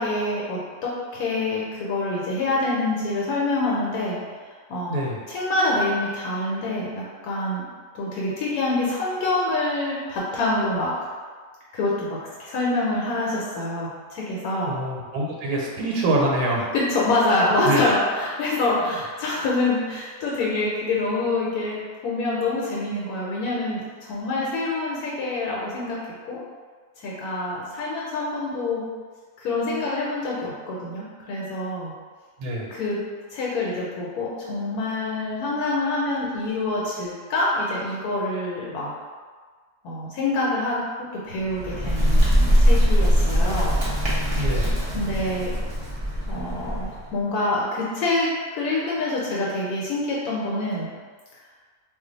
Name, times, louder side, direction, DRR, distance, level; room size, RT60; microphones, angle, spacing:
voice 1, 0.0-4.2 4.7-5.0 5.3-7.6 7.9-10.9 11.7-14.8 16.7-26.0 26.2-26.4 27.0-28.8 29.4-31.9 32.7-33.0 33.3-38.9 39.8-43.8 44.5-45.6 46.3-48.3 48.5-50.9, left 2 dB, 80° left, -5 dB, 1.1 m, -26 dB
voice 2, 4.9-5.2 14.6-16.7 17.6-17.8 32.4-32.7 44.3-44.7, right 1 dB, 90° right, -2 dB, 1.1 m, -25 dB
Bird, 41.4-47.1, equal, 55° right, 0.4 m, -21 dB
2.4 x 2.2 x 3.8 m, 1.5 s
omnidirectional pair, 1.6 m